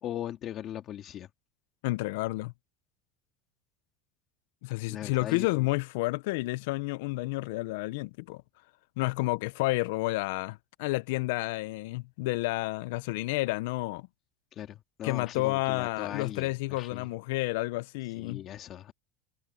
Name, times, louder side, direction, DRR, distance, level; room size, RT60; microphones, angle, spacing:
voice 1, 0.0-1.3 4.9-5.6 14.5-17.1 18.2-18.9, left 11 dB, 30° left, 1.8 m, -39 dB
voice 2, 1.8-2.5 4.6-8.4 9.0-14.1 15.0-18.4, left 21 dB, 65° left, 0.4 m, -30 dB
cardioid pair, 180°, 0 cm